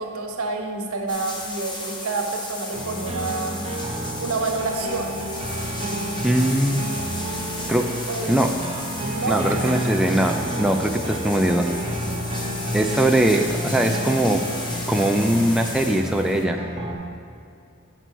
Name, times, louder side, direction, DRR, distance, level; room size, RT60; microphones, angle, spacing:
voice 1, 0.0-3.6 4.2-5.2 8.1-8.3 9.1-9.6, right 3 dB, 70° right, 2 dB, 1.0 m, -28 dB
sound 1, 1.1-16.4, left 2 dB, 20° left, 0.7 m, -35 dB
sound 2, 2.7-16.9, right 1 dB, 25° right, 0.9 m, -30 dB
voice 2, 6.2-6.9 7.7-7.9 8.3-8.5 9.3-11.7 12.7-14.4 14.9-16.6, right 1 dB, 5° right, 2 dB, 0.3 m, -21 dB
8.0 x 4.5 x 6.0 m, 2.5 s
head